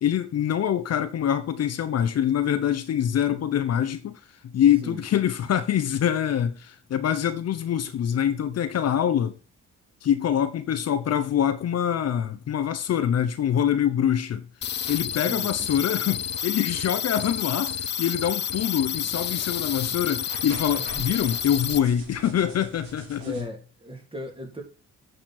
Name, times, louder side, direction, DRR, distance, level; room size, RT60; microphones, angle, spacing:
voice 1, 0.0-9.4 10.0-23.4, left 9 dB, 55° left, 0.9 m, -25 dB
sound 1, 14.6-21.8, left 9 dB, 35° left, 0.5 m, -30 dB
sound 2, 14.8-23.4, right 2 dB, 65° right, 4.5 m, -45 dB
voice 2, 15.2-15.8 20.7-21.2 23.2-24.6, equal, 15° right, 3.1 m, -37 dB
8.9 x 6.6 x 4.4 m
cardioid pair, 90°, 30 cm